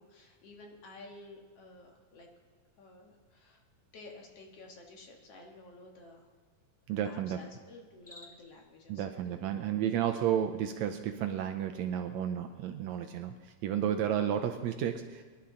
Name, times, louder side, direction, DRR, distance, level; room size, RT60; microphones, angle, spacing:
voice 1, 0.0-2.3 2.8-3.6 3.9-6.3 7.0-9.4, left 2 dB, 55° left, 1 dB, 2.3 m, -52 dB
voice 2, 6.9-7.4 8.9-15.2, right 9 dB, 80° right, 6 dB, 1.8 m, -32 dB
Cricket, 7.9-8.6, left 1 dB, 40° left, 0.4 m, -53 dB
23.5 x 11.5 x 3.8 m, 1.5 s
omnidirectional pair, 3.6 m